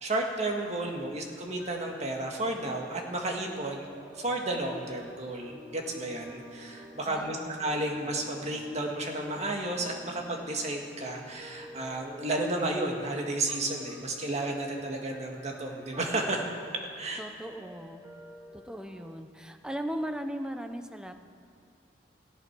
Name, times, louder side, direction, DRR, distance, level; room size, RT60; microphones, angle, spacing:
voice 1, 0.0-3.9 4.2-16.4 17.0-17.2, right 2 dB, 40° right, 1 dB, 1.9 m, -32 dB
voice 2, 0.9-1.2 7.0-7.6 17.2-18.0 18.5-21.1, equal, 5° right, 7 dB, 0.8 m, -38 dB
sound 1, 1.6-19.2, equal, 20° right, 2.4 m, -52 dB
17.0 x 16.0 x 4.7 m, 2.3 s
head